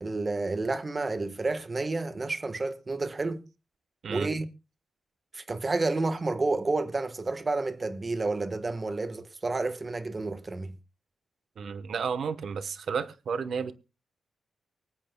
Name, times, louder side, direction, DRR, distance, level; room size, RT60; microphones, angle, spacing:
voice 1, 0.0-3.4 4.1-4.5 5.3-10.7, right 3 dB, 30° right, 1.3 m, -30 dB
voice 2, 11.6-13.7, right 6 dB, 70° right, 1.0 m, -32 dB
24.5 x 8.5 x 2.2 m
cardioid pair, 100°, 0 cm